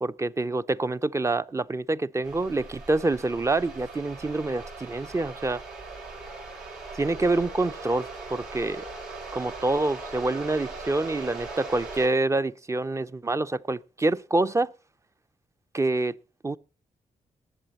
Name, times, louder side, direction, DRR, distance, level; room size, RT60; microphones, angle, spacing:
voice 1, 0.0-5.6 6.9-8.8 9.3-14.7 15.7-16.2 16.4-16.6, right 2 dB, 20° right, 0.5 m, -26 dB
sound 1, 2.2-12.1, right 3 dB, 85° right, 5.1 m, -40 dB
20.5 x 7.4 x 4.2 m
cardioid pair, 70°, 14 cm